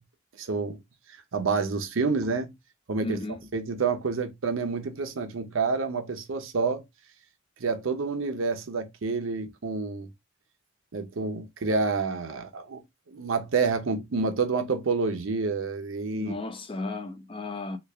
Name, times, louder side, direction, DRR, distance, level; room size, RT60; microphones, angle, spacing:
voice 1, 0.4-0.8 1.3-2.5 2.9-3.2 3.5-6.8 7.6-10.1 10.9-12.8 13.1-16.3, right 4 dB, 75° right, 0.6 m, -28 dB
voice 2, 3.0-3.4 16.1-17.8, left 2 dB, 25° left, 0.4 m, -34 dB
3.2 x 2.3 x 3.3 m
head